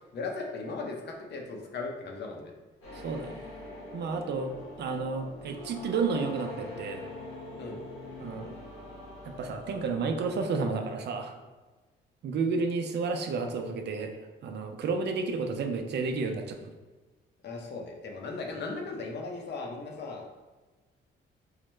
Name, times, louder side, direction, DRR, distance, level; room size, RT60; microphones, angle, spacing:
voice 1, 0.1-2.5 7.6-7.8 17.4-20.3, left 3 dB, 60° left, 1 dB, 0.8 m, -37 dB
sound 1, 2.8-10.7, left 2 dB, 90° left, 1.5 m, -44 dB
voice 2, 2.9-3.4 3.9-4.5 4.8-7.0 8.2-8.5 9.3-11.3 12.2-14.1 14.4-16.7, right 4 dB, 60° right, 5 dB, 0.5 m, -31 dB
4.7 x 2.1 x 3.1 m, 1.3 s
cardioid pair, 90°, 20 cm